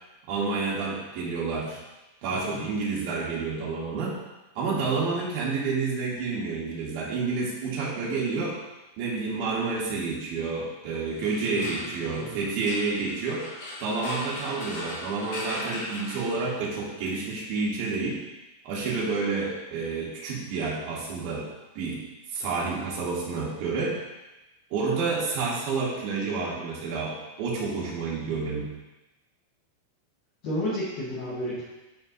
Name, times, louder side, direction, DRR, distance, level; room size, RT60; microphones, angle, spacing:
voice 1, 0.3-1.8 2.2-4.2 4.6-8.6 9.0-13.5 13.8-18.2 18.6-21.5 21.8-22.0 22.3-24.0 24.7-28.7, right 4 dB, 85° right, -5 dB, 2.0 m, -29 dB
sound 1, 11.1-16.8, left 1 dB, 60° left, 1.7 m, -39 dB
voice 2, 11.3-12.5 30.4-31.6, equal, 80° left, -8 dB, 1.8 m, -33 dB
10.5 x 4.8 x 2.7 m, 1.1 s
omnidirectional pair, 5.8 m